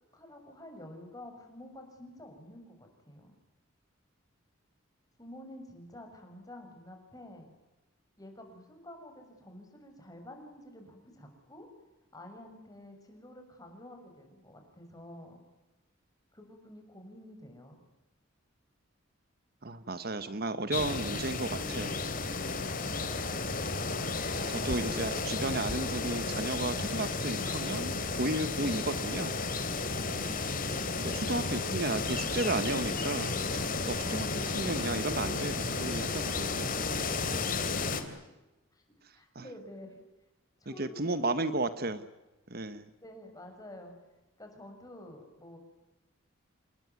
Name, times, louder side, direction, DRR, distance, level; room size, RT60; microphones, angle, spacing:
voice 1, 0.1-3.3 5.2-7.5 8.2-11.7 12.1-15.4 16.3-17.8 29.9-30.6 38.7-38.8 39.1-40.0 40.6-41.2 41.8-42.0 43.0-43.9 44.4-45.6, left 1 dB, 20° left, 4 dB, 6.7 m, -49 dB
voice 2, 19.6-22.0 22.4-22.5 24.5-29.4 31.0-33.4 33.9-36.7 39.3-39.4 40.8-42.1 42.5-42.9, right 2 dB, 50° right, 12 dB, 1.2 m, -34 dB
sound 1, 20.7-38.0, left 3 dB, 45° left, 3.1 m, -33 dB
29.0 x 20.5 x 9.6 m, 1.1 s
head